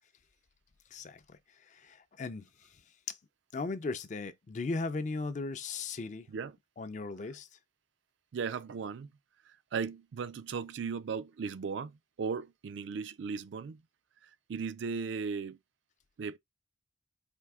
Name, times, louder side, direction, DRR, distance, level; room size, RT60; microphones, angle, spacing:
voice 1, 0.9-2.7 3.1-3.2 3.5-6.3 6.8-7.5, left 3 dB, 40° left, 0.4 m, -37 dB
voice 2, 8.3-9.1 9.5-13.8 14.2-15.6 16.2-16.4, right 5 dB, 70° right, 0.4 m, -37 dB
4.4 x 2.7 x 3.5 m
head